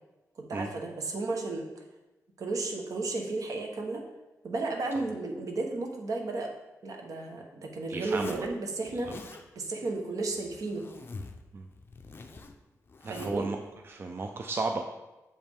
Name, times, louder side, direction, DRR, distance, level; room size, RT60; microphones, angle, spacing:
voice 1, 0.4-1.8 2.4-4.0 4.4-6.5 6.8-9.1 9.5-10.9 13.1-13.5, right 3 dB, 70° right, 2 dB, 1.1 m, -33 dB
voice 2, 7.9-8.5 11.5-11.7 13.0-14.8, right 3 dB, 40° right, 4 dB, 0.4 m, -34 dB
Zipper (clothing), 8.0-8.5 8.9-9.4 10.3-11.4 11.7-13.5, left 3 dB, 40° left, 0.5 m, -45 dB
7.0 x 5.2 x 3.5 m, 1.1 s
wide cardioid pair, 125°, 6 cm